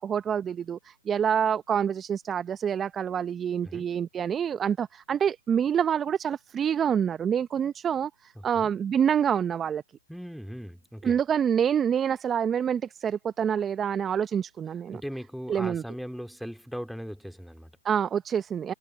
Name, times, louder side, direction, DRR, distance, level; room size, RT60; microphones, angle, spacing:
voice 1, 0.0-9.8 11.0-15.0 15.5-15.8 17.8-18.7, right 8 dB, 15° right, 0.7 m, -27 dB
voice 2, 8.3-8.7 10.1-11.2 14.9-17.7, equal, ahead, 2.4 m, -39 dB
hypercardioid pair, 130°, 0 cm